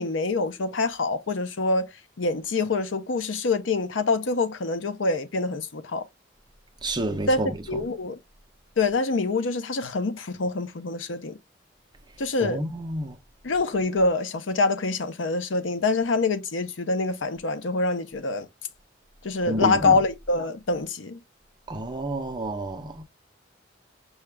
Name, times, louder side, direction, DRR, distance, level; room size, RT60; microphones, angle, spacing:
voice 1, 0.0-1.9 2.2-6.0 7.3-7.4 7.7-8.2 8.8-11.3 12.2-12.6 13.4-18.5 19.2-21.2, left 3 dB, 85° left, 0.6 m, -25 dB
voice 2, 6.8-7.8 12.4-13.2 19.5-20.0 21.7-23.0, right 1 dB, 25° right, 0.6 m, -30 dB
5.7 x 2.4 x 3.3 m
head